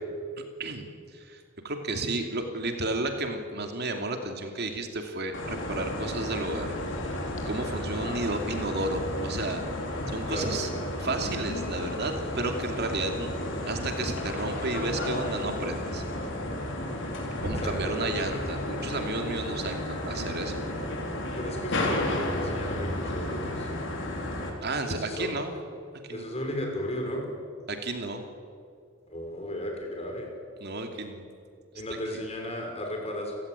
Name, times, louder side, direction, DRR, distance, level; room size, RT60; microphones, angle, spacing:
voice 1, 0.6-6.7 7.4-10.7 11.0-13.3 13.6-16.0 17.4-20.6 24.6-25.5 26.0-26.3 27.7-28.2 30.6-31.2 31.9-32.0, right 2 dB, 55° right, 5 dB, 2.7 m, -32 dB
sound 1, 5.3-24.5, left 1 dB, 65° left, 4.6 m, -32 dB
voice 2, 17.4-18.1 21.4-23.8 24.8-25.3 26.1-27.2 29.1-30.3 31.7-33.3, left 1 dB, 30° left, 1 dB, 6.2 m, -35 dB
30.0 x 16.5 x 9.7 m, 2.3 s
head